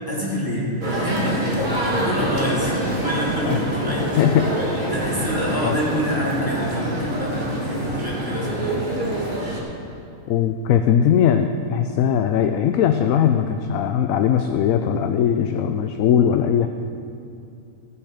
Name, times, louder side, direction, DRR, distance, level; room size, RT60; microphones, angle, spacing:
voice 1, 0.1-4.2 4.9-8.8, equal, 15° right, -7 dB, 3.0 m, -27 dB
sound 1, 0.8-9.6, right 1 dB, 30° right, 1.9 m, -25 dB
voice 2, 4.0-4.5 5.6-5.8 10.3-16.7, left 9 dB, 70° left, 7 dB, 0.9 m, -19 dB
16.0 x 7.1 x 5.0 m, 2.5 s
omnidirectional pair, 1.6 m